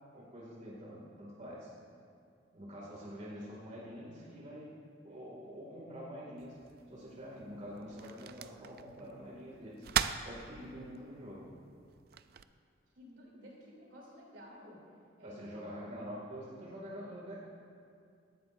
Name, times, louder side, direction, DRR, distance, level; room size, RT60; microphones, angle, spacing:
voice 1, 0.1-1.7 2.5-4.8 5.0-6.6 6.9-11.5 15.2-17.3, equal, 40° right, -5 dB, 2.2 m, -46 dB
sound 1, 6.4-12.4, right 8 dB, 55° right, 0.4 m, -41 dB
voice 2, 12.9-14.8 15.2-15.7, left 1 dB, 75° right, -3 dB, 3.2 m, -52 dB
17.5 x 13.5 x 2.6 m, 2.3 s
head